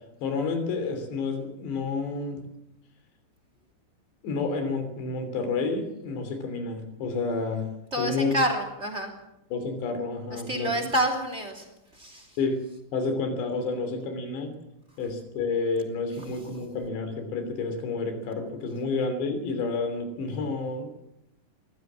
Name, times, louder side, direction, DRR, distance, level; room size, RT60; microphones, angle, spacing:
voice 1, 0.2-2.4 4.2-7.7 8.0-8.4 9.5-10.7 12.4-12.6 12.9-14.5 15.0-20.9, left 4 dB, 75° left, 7 dB, 5.3 m, -30 dB
voice 2, 7.9-9.1 10.3-11.6 12.0-12.3, equal, 20° right, 5 dB, 2.6 m, -28 dB
22.5 x 15.5 x 7.4 m, 0.85 s
omnidirectional pair, 5.0 m